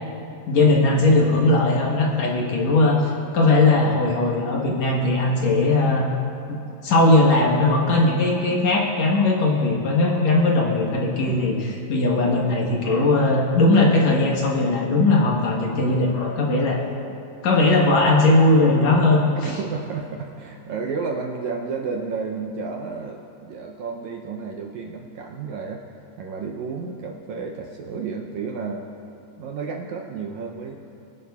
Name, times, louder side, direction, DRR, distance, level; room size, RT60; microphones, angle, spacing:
voice 1, 0.5-3.0 3.3-6.1 6.8-16.8 17.4-19.5, left 2 dB, 60° left, -2 dB, 2.1 m, -19 dB
voice 2, 11.2-11.9 19.4-25.9 26.2-28.9 29.4-30.8, right 5 dB, 75° right, 0 dB, 1.8 m, -32 dB
22.5 x 11.0 x 2.4 m, 2.7 s
omnidirectional pair, 3.9 m